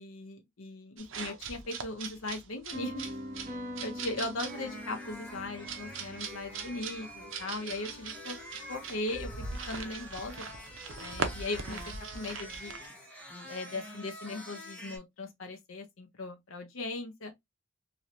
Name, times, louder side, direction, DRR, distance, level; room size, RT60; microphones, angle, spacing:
voice 1, 0.0-3.0 3.8-8.4 8.7-10.5 11.0-11.8 12.1-12.7 13.5-17.3, left 2 dB, 85° left, 0.8 m, -38 dB
sound 1, 1.0-12.9, right 5 dB, 70° right, 0.7 m, -41 dB
sound 2, 2.7-9.6, left 1 dB, 45° right, 1.1 m, -45 dB
sound 3, 4.5-15.0, equal, 5° left, 1.0 m, -47 dB
3.1 x 2.8 x 2.6 m
head